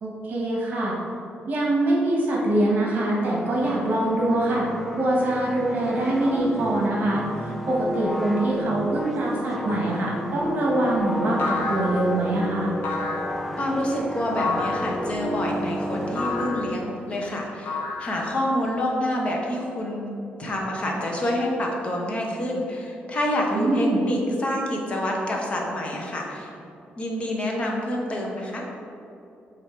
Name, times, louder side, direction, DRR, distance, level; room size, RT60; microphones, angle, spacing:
voice 1, 0.0-0.9 1.5-4.7 5.0-12.7 23.5-24.0, right 1 dB, 50° right, -4 dB, 1.2 m, -24 dB
sound 1, 3.1-17.3, equal, ahead, 0.3 m, -32 dB
sound 2, 9.7-10.1 11.4-12.2 12.8-13.4 14.4-14.9 16.2-16.7 17.7-18.4, left 4 dB, 70° left, 1.0 m, -30 dB
voice 2, 13.6-20.1 20.4-26.5 27.0-28.6, left 1 dB, 30° left, -1 dB, 0.9 m, -27 dB
7.9 x 2.7 x 4.4 m, 2.8 s
cardioid pair, 160°, 4 cm